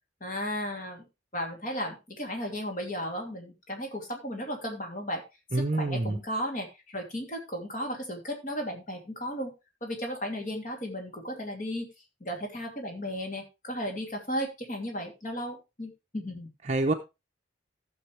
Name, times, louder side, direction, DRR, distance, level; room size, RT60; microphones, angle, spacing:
voice 1, 0.2-1.0 1.3-5.2 5.5-9.5 9.8-11.9 12.2-16.5, equal, 40° left, 2 dB, 2.8 m, -35 dB
voice 2, 5.5-6.2 16.7-16.9, right 2 dB, 35° right, 4 dB, 0.7 m, -26 dB
14.5 x 6.9 x 3.3 m, 0.25 s
head